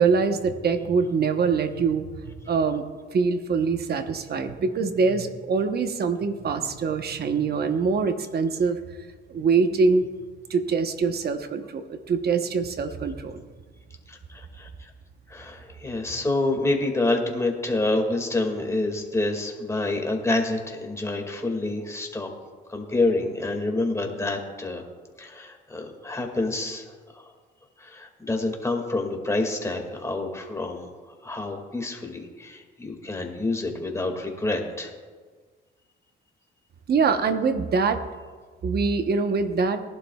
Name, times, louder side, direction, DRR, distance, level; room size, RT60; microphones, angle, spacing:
voice 1, 0.0-2.8 3.1-8.8 9.3-10.1 10.5-13.4 36.9-38.0 38.6-39.8, right 5 dB, 55° right, 8 dB, 1.0 m, -24 dB
voice 2, 14.1-14.9 15.3-22.3 22.7-24.8 25.2-27.3 27.8-30.9 31.2-34.9, left 2 dB, 15° left, 2 dB, 2.1 m, -28 dB
19.0 x 11.5 x 2.4 m, 1.5 s
cardioid pair, 90°, 20 cm